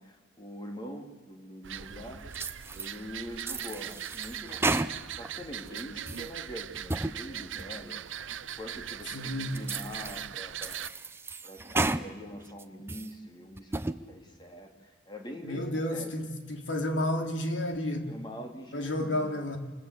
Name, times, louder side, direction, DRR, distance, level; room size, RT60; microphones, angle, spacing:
voice 1, 0.0-2.3 2.7-8.0 8.6-10.9 11.4-13.8 14.1-16.1 18.1-19.4, equal, 25° left, 2.9 m, -44 dB
sound 1, 1.6-10.9, right 10 dB, 90° right, 0.7 m, -40 dB
sound 2, 2.3-3.0 3.4-5.3 5.7-6.3 6.7-7.2 7.6-7.7 8.3-8.4 9.0-9.1 9.5-10.3 10.6-12.0 12.5-13.1 13.6-14.0, right 2 dB, 15° right, 0.7 m, -33 dB
voice 2, 9.1-9.6 15.4-18.1 18.7-19.6, left 1 dB, 80° left, 3.1 m, -31 dB
27.0 x 21.5 x 8.2 m
head